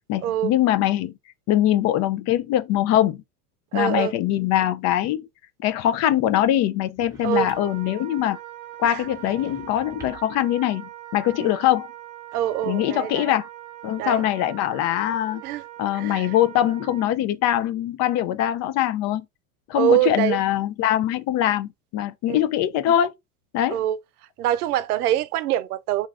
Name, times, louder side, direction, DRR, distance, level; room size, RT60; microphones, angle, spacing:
voice 1, 0.1-1.1 1.5-3.2 3.7-5.3 5.6-8.4 8.8-11.9 12.6-13.5 13.8-15.4 15.8-19.3 19.7-23.1 23.5-23.8, left 12 dB, 40° left, 0.4 m, -22 dB
voice 2, 3.7-4.1 7.2-7.5 8.8-9.0 11.4-11.5 12.3-13.3 14.0-14.2 15.4-15.6 15.9-16.3 19.7-20.4 22.3-22.4 23.7-24.0 24.4-26.1, right 12 dB, 80° right, 0.6 m, -24 dB
sound 1, 6.9-7.9 9.0-10.4, right 4 dB, 5° right, 1.0 m, -47 dB
Wind instrument woodwind instrument, 7.3-17.2, right 13 dB, 35° right, 0.8 m, -41 dB
2.5 x 2.3 x 3.3 m
hypercardioid pair, 100°, 44 cm